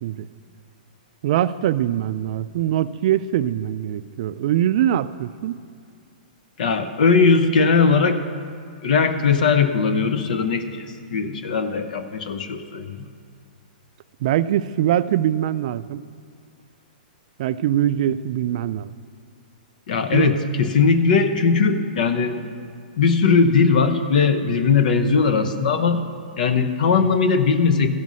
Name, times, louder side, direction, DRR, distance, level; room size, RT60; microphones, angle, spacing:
voice 1, 1.2-5.6 14.2-16.0 17.4-18.9 20.1-20.3, right 11 dB, 50° right, 15 dB, 0.3 m, -22 dB
voice 2, 6.6-8.2 8.8-13.0 19.9-22.4 23.0-26.0 26.4-27.9, left 5 dB, 65° left, 8 dB, 0.9 m, -19 dB
15.0 x 5.3 x 6.2 m, 2.2 s
hypercardioid pair, 135°, 5 cm